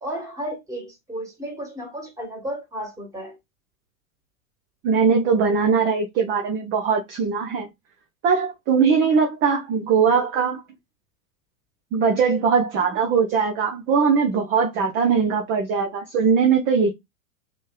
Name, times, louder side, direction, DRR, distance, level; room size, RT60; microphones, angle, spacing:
voice 1, 0.0-3.4, right 1 dB, 10° right, 1.6 m, -33 dB
voice 2, 4.8-7.7 8.2-10.6 11.9-16.9, right 5 dB, 30° right, 0.7 m, -20 dB
3.5 x 3.1 x 2.3 m
figure-of-eight pair, 100°, 41 cm